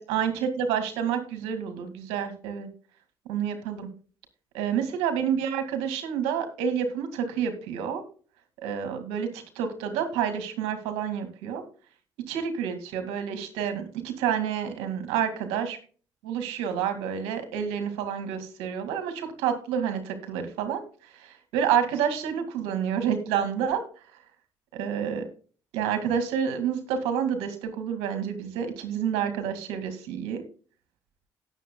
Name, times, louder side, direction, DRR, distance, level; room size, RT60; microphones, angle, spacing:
voice 1, 0.0-2.7 3.3-3.9 4.5-8.0 8.6-11.6 12.3-15.8 16.2-23.8 24.7-25.2 25.7-30.4, right 8 dB, 85° right, 8 dB, 2.1 m, -29 dB
18.0 x 7.3 x 2.3 m, 0.40 s
hypercardioid pair, 50°, 10 cm